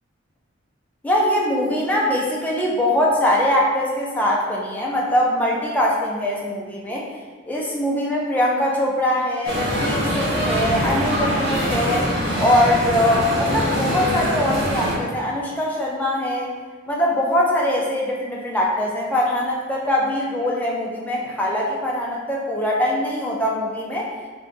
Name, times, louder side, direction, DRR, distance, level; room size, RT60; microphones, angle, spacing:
voice 1, 1.0-7.1 7.5-12.1 12.4-16.5 16.9-24.1, left 1 dB, 10° left, -4 dB, 0.4 m, -22 dB
sound 1, 9.5-15.0, equal, 55° right, 0.7 m, -23 dB
2.6 x 2.3 x 3.9 m, 1.5 s
head